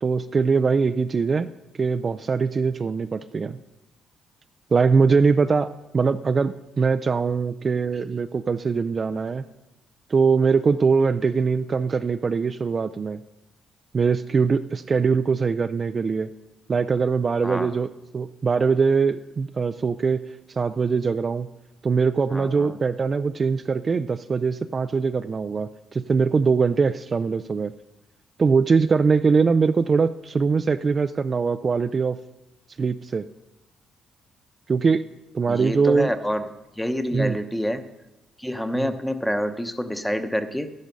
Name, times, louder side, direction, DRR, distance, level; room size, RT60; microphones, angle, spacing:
voice 1, 0.0-1.5 1.8-3.6 4.7-9.5 10.1-13.2 13.9-16.3 16.7-17.9 18.1-21.5 21.8-27.7 28.4-32.2 32.8-33.3 34.7-35.0 35.3-36.1 37.1-37.4 38.7-38.9, right 5 dB, 40° right, 10 dB, 0.4 m, -22 dB
voice 2, 17.4-17.7 22.3-22.8 35.5-36.4 36.8-37.9 38.4-40.7, equal, 5° left, 9 dB, 0.9 m, -27 dB
11.5 x 10.5 x 5.3 m, 0.97 s
cardioid pair, 90°, 0 cm